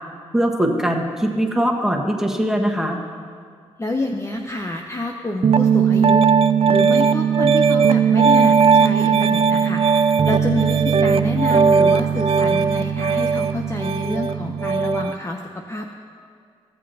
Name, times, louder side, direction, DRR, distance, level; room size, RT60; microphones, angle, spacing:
voice 1, 0.3-3.0, equal, 5° right, 1 dB, 1.5 m, -21 dB
voice 2, 3.8-6.3 6.7-9.8 10.3-16.0, left 1 dB, 20° left, 2 dB, 0.7 m, -27 dB
Piano, 5.4-15.1, right 6 dB, 50° right, 0.5 m, -17 dB
15.5 x 7.4 x 2.8 m, 2.1 s
supercardioid pair, 45°, 13 cm